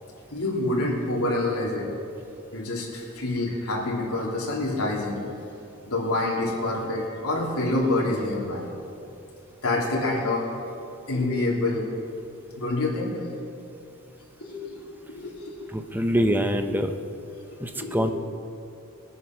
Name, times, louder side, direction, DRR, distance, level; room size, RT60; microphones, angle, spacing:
voice 1, 0.3-1.9 2.5-5.2 5.9-8.6 9.6-10.5 11.1-11.9 12.6-13.5 14.4-14.8 15.1-15.6 15.9-16.0 17.7-18.1, left 2 dB, 90° left, -3 dB, 3.2 m, -27 dB
voice 2, 15.7-16.9 17.6-18.1, equal, 10° right, 7 dB, 0.7 m, -24 dB
21.0 x 9.5 x 6.0 m, 2.7 s
head